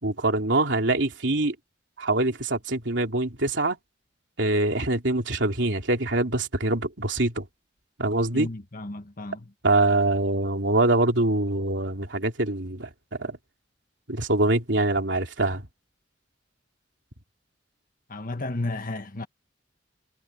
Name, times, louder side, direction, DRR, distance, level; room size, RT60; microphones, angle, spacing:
voice 1, 0.0-1.5 2.0-3.8 4.4-7.4 8.0-8.5 9.6-12.9 13.2-13.4 14.1-15.6, right 2 dB, 70° right, 3.4 m, -24 dB
voice 2, 8.3-9.5 18.1-19.3, left 2 dB, 50° left, 1.6 m, -33 dB
head